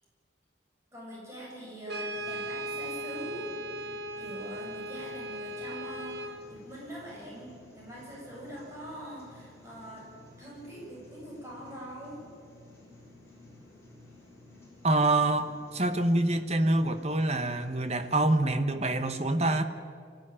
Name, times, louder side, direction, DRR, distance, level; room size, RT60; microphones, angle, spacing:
voice 1, 0.9-10.1 10.4-12.2, right 1 dB, 15° right, -5 dB, 7.6 m, -43 dB
sound 1, 1.8-18.4, left 1 dB, 15° left, 7.0 m, -54 dB
Brass instrument, 1.9-6.4, right 1 dB, 60° right, 1.5 m, -37 dB
voice 2, 14.8-19.6, right 2 dB, 35° right, 8 dB, 1.3 m, -26 dB
24.5 x 15.5 x 10.0 m, 2.1 s
head